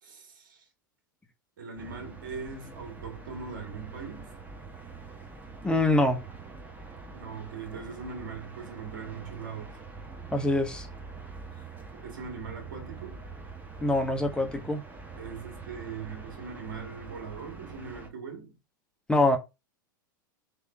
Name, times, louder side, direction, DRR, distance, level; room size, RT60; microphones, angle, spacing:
voice 1, 0.0-0.6 1.6-4.4 7.1-9.8 11.9-13.3 15.2-18.6, right 5 dB, 70° right, 2.2 m, -41 dB
sound 1, 1.8-18.1, right 4 dB, 15° right, 1.5 m, -45 dB
voice 2, 5.6-6.2 10.3-10.9 13.8-14.8 19.1-19.4, left 2 dB, 10° left, 1.1 m, -24 dB
3.5 x 3.4 x 4.4 m
hypercardioid pair, 95°, 11 cm